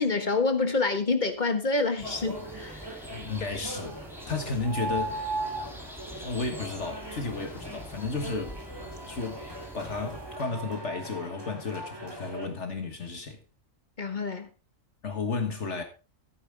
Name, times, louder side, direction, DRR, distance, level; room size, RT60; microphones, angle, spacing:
voice 1, 0.0-2.9 14.0-14.5, left 3 dB, 35° left, 1.6 m, -27 dB
sound 1, 2.0-10.4, equal, ahead, 2.5 m, -45 dB
sound 2, 2.0-12.5, right 2 dB, 20° right, 2.8 m, -39 dB
voice 2, 3.1-4.0 4.3-5.4 6.2-8.6 9.1-9.5 9.7-13.4 15.0-15.8, left 4 dB, 60° left, 1.8 m, -33 dB
14.5 x 9.3 x 3.5 m
omnidirectional pair, 1.4 m